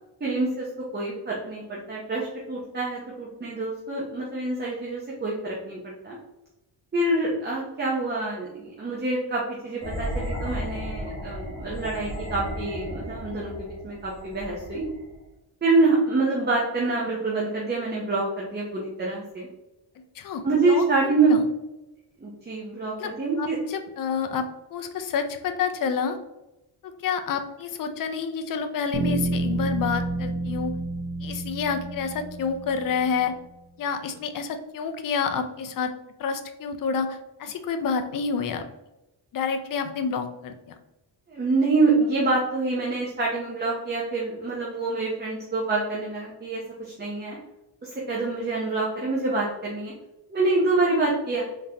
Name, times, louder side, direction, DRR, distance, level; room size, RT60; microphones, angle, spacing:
voice 1, 0.2-0.7 0.9-6.2 6.9-14.8 15.6-19.5 20.4-21.5 22.2-23.6 41.3-47.4 47.8-49.9 50.3-51.4, right 3 dB, 20° right, -4 dB, 0.7 m, -26 dB
sound 1, 9.8-15.3, equal, 25° left, 1.2 m, -34 dB
voice 2, 20.2-21.4 23.0-23.1 23.4-26.2 26.8-30.7 31.2-33.4 33.8-35.9 36.2-38.6 39.3-40.7, left 6 dB, 45° left, 7 dB, 0.4 m, -29 dB
sound 2, 28.9-33.0, right 2 dB, 75° right, 0.9 m, -29 dB
3.7 x 3.6 x 2.8 m, 0.97 s
wide cardioid pair, 160°, 46 cm